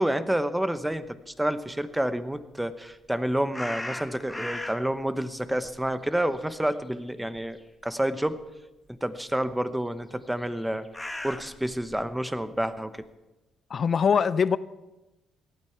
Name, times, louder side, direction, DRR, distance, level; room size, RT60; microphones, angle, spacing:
voice 1, 0.0-8.4 8.9-10.9 11.2-13.0, right 1 dB, 5° right, 12 dB, 0.9 m, -29 dB
sound 1, 3.5-5.0 5.4-7.1 7.4-7.6 8.4-8.5 10.3-12.1, left 1 dB, 10° left, 1.3 m, -37 dB
voice 2, 13.7-14.6, left 6 dB, 50° left, 17 dB, 0.6 m, -22 dB
18.0 x 12.5 x 5.8 m, 1.1 s
cardioid pair, 90°, 0 cm